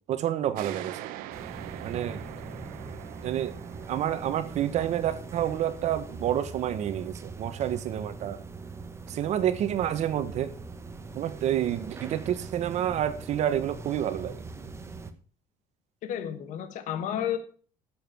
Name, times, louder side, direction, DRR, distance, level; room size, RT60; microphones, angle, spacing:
voice 1, 0.1-1.0 1.8-2.2 3.2-3.5 3.9-8.4 9.1-10.5 11.1-14.4, right 11 dB, 55° right, 11 dB, 1.4 m, -29 dB
sound 1, 0.5-7.7, right 13 dB, 85° right, 1.0 m, -44 dB
sound 2, 1.3-15.1, right 3 dB, 20° right, 1.2 m, -42 dB
voice 2, 16.0-17.4, left 10 dB, 60° left, 10 dB, 1.3 m, -31 dB
11.0 x 7.5 x 6.3 m, 0.42 s
cardioid pair, 140°, 14 cm